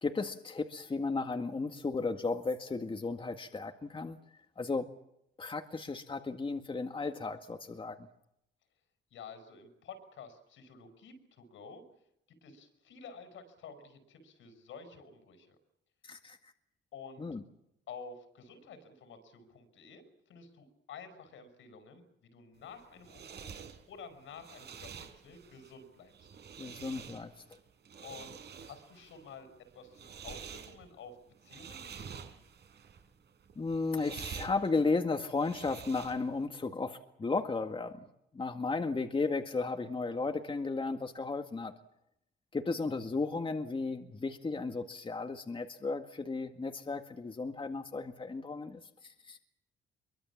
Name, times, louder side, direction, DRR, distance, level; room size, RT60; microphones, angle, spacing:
voice 1, 0.0-4.2 4.6-4.9 5.4-8.0 16.0-16.4 17.2-17.4 26.6-27.3 33.6-38.1 38.3-41.8 42.5-49.4, left 3 dB, 25° left, 5 dB, 1.9 m, -34 dB
voice 2, 9.1-11.8 12.3-15.6 16.9-17.3 17.9-23.5 23.9-26.3 28.0-31.2 31.4-32.3, left 5 dB, 75° left, 10 dB, 5.9 m, -51 dB
sound 1, 22.6-36.5, right 7 dB, 60° right, 4.2 m, -48 dB
23.5 x 23.5 x 7.3 m, 0.80 s
cardioid pair, 90°, 20 cm